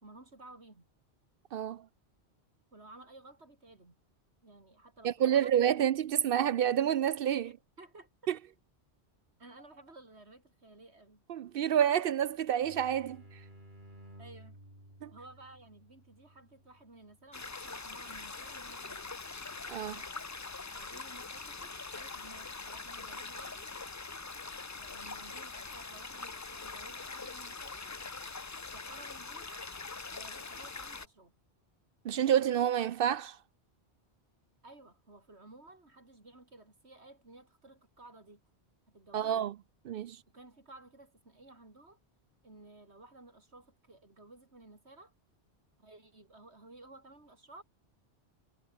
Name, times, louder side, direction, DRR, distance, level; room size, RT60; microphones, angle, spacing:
voice 1, 0.0-0.8 2.7-4.0 4.4-5.5 7.4-8.3 9.4-11.2 14.2-14.6 15.1-19.2 20.7-23.7 24.7-27.9 28.7-29.6 30.1-31.3 34.6-38.4 38.9-39.5 40.3-42.0 42.4-45.1 45.8-47.6, right 2 dB, 90° right, 4.6 m, -55 dB
voice 2, 1.5-1.8 5.0-7.6 8.3-8.4 11.3-13.2 15.0-15.1 19.7-20.0 32.0-33.4 39.1-39.5 39.9-40.2, right 9 dB, 65° right, 0.7 m, -28 dB
sound 1, 12.6-18.1, right 1 dB, 50° right, 8.0 m, -56 dB
sound 2, 17.3-31.1, left 4 dB, 25° left, 0.4 m, -43 dB
omnidirectional pair, 1.1 m